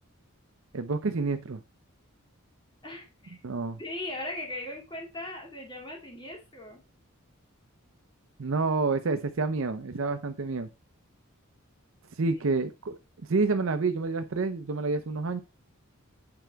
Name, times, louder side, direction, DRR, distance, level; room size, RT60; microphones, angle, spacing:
voice 1, 0.7-1.6 3.4-3.8 8.4-10.7 12.2-13.0 13.3-15.4, right 3 dB, 65° right, 8 dB, 0.6 m, -28 dB
voice 2, 2.8-3.4 3.8-6.8 12.3-12.4, left 1 dB, 20° left, -1 dB, 2.1 m, -39 dB
8.9 x 4.5 x 4.6 m, 0.28 s
head